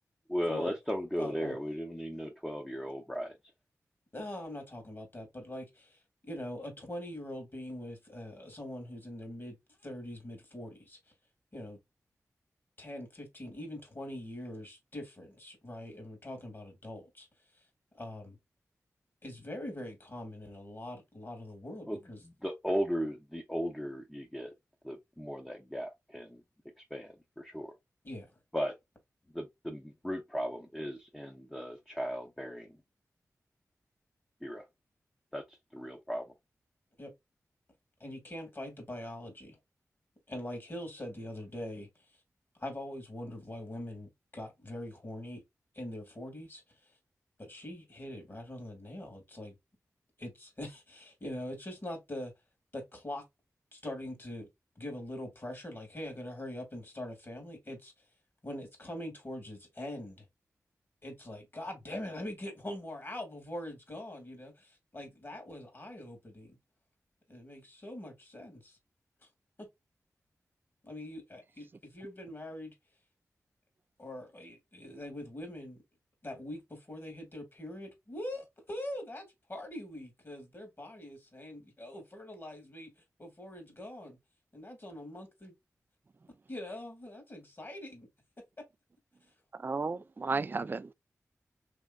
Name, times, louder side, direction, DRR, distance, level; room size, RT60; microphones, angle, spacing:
voice 1, 0.3-3.3 21.9-24.5 24.8-26.4 26.9-27.7 28.5-28.8 29.3-32.8 34.4-34.7 35.3-36.2, equal, 10° left, 0.8 m, -36 dB
voice 2, 1.2-1.6 4.1-9.6 9.8-11.0 11.5-11.8 12.8-17.3 17.9-18.4 19.2-22.2 28.0-28.3 37.0-37.1 38.0-39.6 40.3-42.0 42.6-45.4 45.7-46.6 47.4-49.5 50.2-52.3 52.7-53.2 53.7-54.5 54.8-57.9 58.4-60.3 61.0-66.5 67.3-68.8 69.6-69.7 70.8-72.7 74.0-75.8 76.2-82.9 83.2-84.2 84.5-85.3 86.5-88.1 88.6-88.7, left 1 dB, 40° left, 2.1 m, -43 dB
voice 3, 89.6-90.9, right 4 dB, 35° right, 0.3 m, -33 dB
3.6 x 3.2 x 2.4 m
cardioid pair, 50°, 6 cm